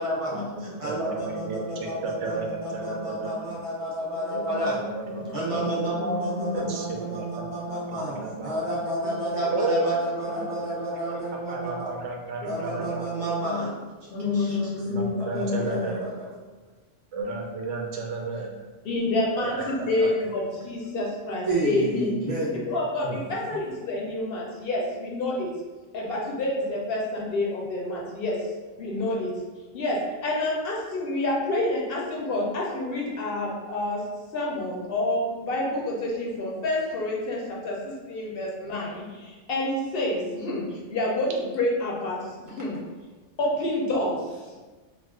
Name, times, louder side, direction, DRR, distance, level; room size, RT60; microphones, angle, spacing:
voice 1, 0.0-4.8 5.3-11.9 12.4-13.7 14.3-14.9 15.2-16.3 21.4-22.6 42.6-42.7, right 1 dB, 40° right, -6 dB, 0.5 m, -30 dB
voice 2, 0.6-3.5 4.3-5.7 6.5-7.5 7.7-8.7 9.5-10.4 11.1-11.2 11.5-13.1 14.8-16.0 17.1-18.5 19.4-20.3 23.0-23.2, right 3 dB, 85° right, 1 dB, 0.9 m, -33 dB
voice 3, 5.1-5.7 6.0-6.6 9.0-9.5 12.4-12.5 13.4-13.6 14.1-15.9 18.8-22.2 22.5-25.5 25.9-28.4 28.8-29.3 29.7-34.1 34.3-40.6 40.9-42.8 43.4-44.5, left 2 dB, 60° left, -3 dB, 0.7 m, -28 dB
2.4 x 2.3 x 3.4 m, 1.3 s
omnidirectional pair, 1.2 m